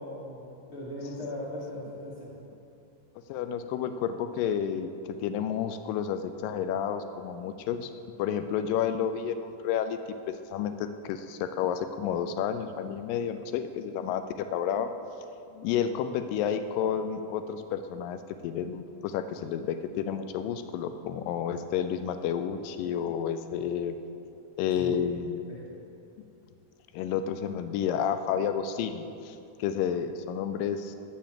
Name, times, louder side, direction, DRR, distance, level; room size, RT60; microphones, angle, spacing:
voice 1, 0.0-2.3 24.8-25.0 25.5-25.6, equal, 40° left, -10 dB, 2.5 m, -38 dB
voice 2, 3.3-7.9 8.2-10.0 10.5-14.9 15.5-18.2 18.4-24.0 24.6-25.4 26.9-31.0, left 8 dB, 80° left, 9 dB, 2.1 m, -30 dB
7.3 x 6.9 x 7.5 m, 2.6 s
omnidirectional pair, 4.1 m